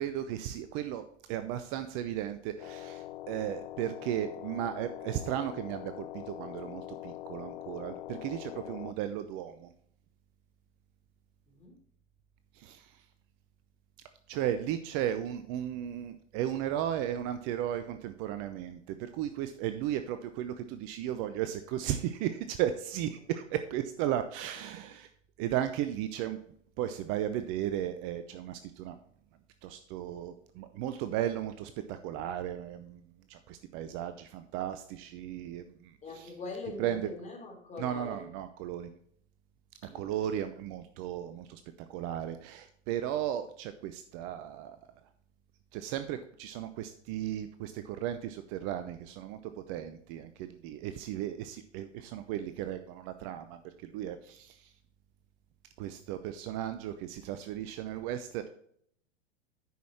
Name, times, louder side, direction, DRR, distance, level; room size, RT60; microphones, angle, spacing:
voice 1, 0.0-9.7 12.5-13.0 14.3-25.1 25.4-26.4 26.8-29.0 29.6-33.0 33.3-36.3 36.8-37.0 37.8-38.9 39.8-41.6 41.9-44.8 45.7-54.7 55.8-58.5, right 11 dB, 35° right, 10 dB, 0.7 m, -35 dB
sound 1, 2.6-8.9, left 14 dB, 50° left, 0.5 m, -43 dB
voice 2, 11.5-11.8 36.0-38.2 39.9-40.0, left 3 dB, 20° left, 1 dB, 3.1 m, -42 dB
9.3 x 6.3 x 4.2 m, 0.65 s
figure-of-eight pair, 100°, 35 cm